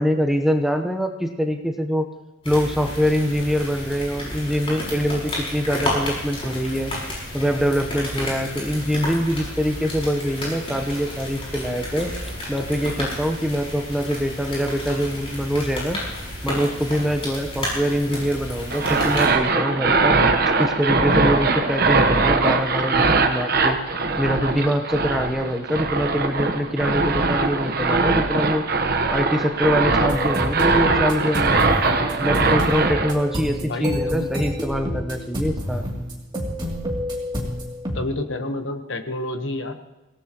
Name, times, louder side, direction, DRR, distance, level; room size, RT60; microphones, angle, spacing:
voice 1, 0.0-2.1 2.4-6.9 7.3-16.0 16.4-20.2 20.6-23.8 24.2-28.6 29.1-31.7 32.2-35.9, equal, ahead, 5 dB, 0.9 m, -24 dB
sound 1, 2.4-19.3, left 1 dB, 25° left, 6.4 m, -31 dB
sound 2, 18.7-33.1, right 3 dB, 50° right, 1.1 m, -21 dB
sound 3, 30.0-38.0, equal, 20° right, 2.8 m, -29 dB
voice 2, 33.6-34.3 37.9-39.8, left 2 dB, 60° left, 7 dB, 1.2 m, -29 dB
25.0 x 18.0 x 3.0 m, 1.0 s
head